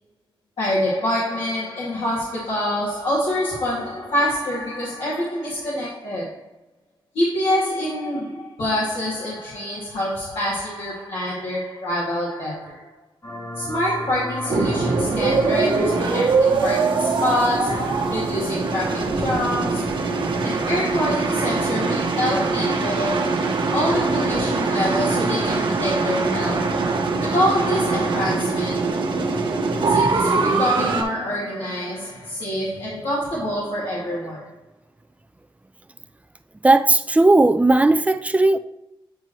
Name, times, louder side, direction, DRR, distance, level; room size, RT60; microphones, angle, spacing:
voice 1, 0.6-6.5 7.1-13.0 13.6-26.9 27.2-29.1 29.9-34.6, left 1 dB, 80° left, 2.2 m, -26 dB
sound 1, 13.2-18.6, equal, 35° left, 1.4 m, -35 dB
sound 2, 14.5-31.0, right 4 dB, 65° right, 1.1 m, -22 dB
voice 2, 36.6-38.6, right 2 dB, 15° right, 0.5 m, -16 dB
9.1 x 4.6 x 3.0 m
wide cardioid pair, 100°, 9 cm